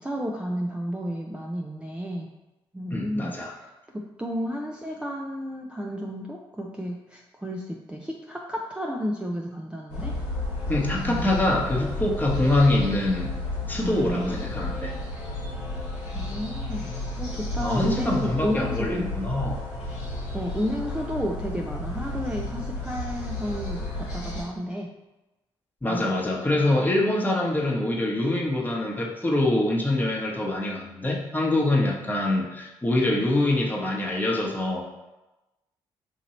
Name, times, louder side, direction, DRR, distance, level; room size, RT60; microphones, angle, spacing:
voice 1, 0.0-2.3 2.7-3.3 3.9-10.2 11.0-11.3 13.8-14.4 16.1-16.9 17.2-19.1 20.3-24.9 25.9-26.4, equal, 10° right, 0 dB, 0.4 m, -32 dB
voice 2, 2.9-3.6 10.7-13.3 13.7-14.9 17.6-19.6 25.8-34.8, left 2 dB, 15° left, -2 dB, 1.0 m, -24 dB
sound 1, 9.9-24.4, left 2 dB, 85° left, 1.1 m, -32 dB
2.9 x 2.6 x 4.1 m, 1.0 s
supercardioid pair, 55°, 12 cm